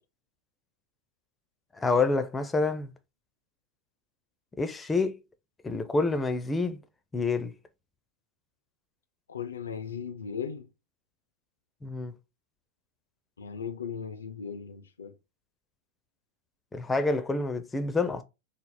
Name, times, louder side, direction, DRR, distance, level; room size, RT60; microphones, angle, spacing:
voice 1, 1.8-2.9 4.6-5.1 5.6-6.8 7.1-7.5 11.8-12.1 16.7-18.2, left 3 dB, 15° left, 0.5 m, -27 dB
voice 2, 9.3-10.7 13.4-15.1, left 7 dB, 70° left, 0.5 m, -37 dB
3.3 x 2.0 x 4.0 m
figure-of-eight pair, 90°, 0 cm